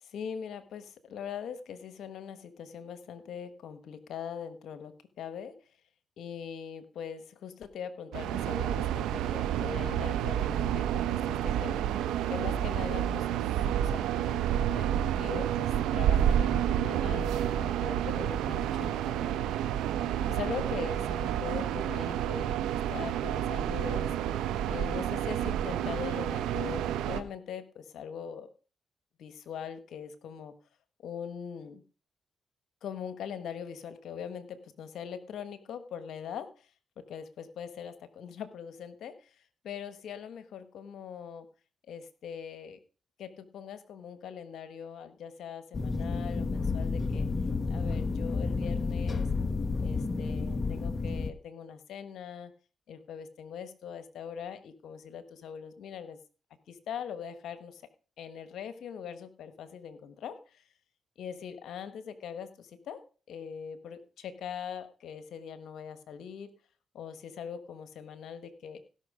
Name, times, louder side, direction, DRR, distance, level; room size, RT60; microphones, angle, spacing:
voice 1, 0.0-4.9 5.2-5.5 6.2-11.8 12.3-13.5 13.8-19.4 20.3-22.5 22.9-24.3 24.7-28.5 29.2-30.5 31.0-31.8 32.8-36.5 37.0-39.1 39.6-41.5 41.9-42.8 43.2-47.3 47.7-49.3 49.8-52.5 52.9-56.2 56.7-57.8 58.2-60.4 61.2-63.0 63.3-66.5 66.9-68.8, left 7 dB, 75° left, 11 dB, 1.3 m, -41 dB
sound 1, 8.1-27.2, right 10 dB, 85° right, 0.8 m, -29 dB
sound 2, 45.7-51.3, left 4 dB, 45° left, 1.2 m, -31 dB
16.5 x 6.0 x 5.0 m, 0.36 s
supercardioid pair, 55°, 0 cm